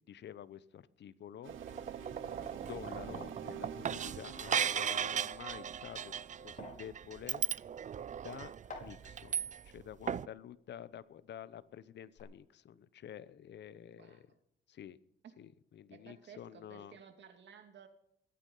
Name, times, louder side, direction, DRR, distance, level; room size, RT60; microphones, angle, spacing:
voice 1, 0.1-1.6 2.2-6.1 6.4-7.4 8.2-8.5 8.8-14.3 14.7-15.0 15.4-16.9, left 10 dB, 60° left, 16 dB, 1.0 m, -49 dB
sound 1, 1.4-5.8, right 8 dB, 80° right, 1.9 m, -49 dB
sound 2, 1.5-9.8 10.1-10.3, right 8 dB, 40° right, 0.5 m, -37 dB
sound 3, 6.4-11.7 11.9-12.2, left 3 dB, 40° left, 5.1 m, -55 dB
voice 2, 13.9-14.4 15.2-15.3 15.9-17.9, right 7 dB, 65° right, 6 dB, 2.8 m, -56 dB
21.5 x 9.4 x 5.6 m, 0.73 s
cardioid pair, 90°, 20 cm